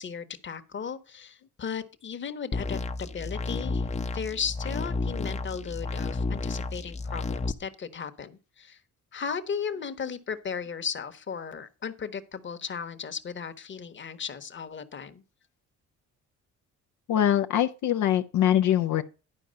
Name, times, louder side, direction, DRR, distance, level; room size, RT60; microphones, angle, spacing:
voice 1, 0.0-3.9 4.1-8.8 9.1-15.2, left 6 dB, 40° left, 1.2 m, -36 dB
sound 1, 2.5-7.5, left 3 dB, 20° left, 0.7 m, -31 dB
voice 2, 17.1-19.0, left 11 dB, 75° left, 0.7 m, -23 dB
11.0 x 4.8 x 6.4 m
cardioid pair, 90°, 30 cm